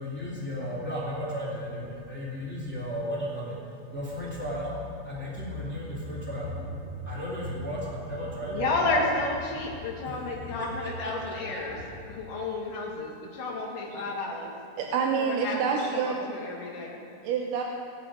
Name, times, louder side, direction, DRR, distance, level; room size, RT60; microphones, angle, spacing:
voice 1, 0.0-3.6 3.9-9.0 10.0-10.1 10.6-12.2, equal, 5° left, -6 dB, 2.5 m, -35 dB
voice 2, 8.5-11.8 12.1-14.5 15.2-17.0, left 2 dB, 90° left, -2 dB, 3.6 m, -31 dB
voice 3, 14.8-16.2 17.2-17.6, right 6 dB, 85° right, 1 dB, 2.4 m, -27 dB
19.5 x 9.8 x 5.0 m, 2.4 s
omnidirectional pair, 3.7 m